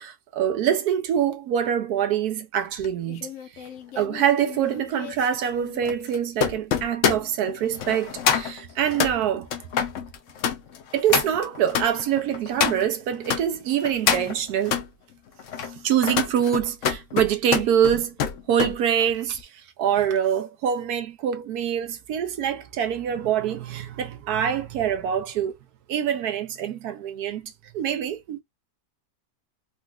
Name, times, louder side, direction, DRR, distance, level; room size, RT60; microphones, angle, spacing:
voice 1, 0.0-3.3 3.5-3.7 4.0-9.5 10.9-14.8 15.8-18.1 18.5-25.5 25.9-28.4, right 9 dB, 70° right, 1.0 m, -25 dB
sound 1, 2.8-13.4 13.8-14.9 15.4-18.8 19.1-19.4, left 7 dB, 65° left, 0.8 m, -28 dB
3.9 x 2.4 x 2.2 m
omnidirectional pair, 1.9 m